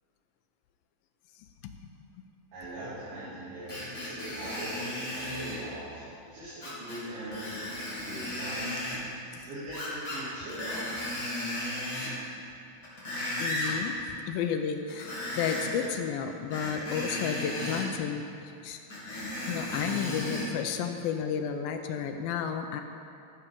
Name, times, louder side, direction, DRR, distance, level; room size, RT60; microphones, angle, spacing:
voice 1, 2.5-6.0 6.3-9.0 9.5-10.8, right 1 dB, 80° right, -14 dB, 5.5 m, -41 dB
Screech, 3.7-5.6 6.6-7.0 7.3-9.0 9.7-10.2 10.5-12.2 12.7-13.8 14.9-15.9 16.5-17.9 18.9-20.5 21.1-21.2, left 1 dB, 25° left, 3.0 m, -35 dB
voice 2, 13.4-14.0 14.3-18.2 18.6-18.8 19.1-22.8, left 7 dB, 80° left, 6 dB, 2.2 m, -32 dB
15.0 x 7.1 x 5.2 m, 2.6 s
omnidirectional pair, 4.6 m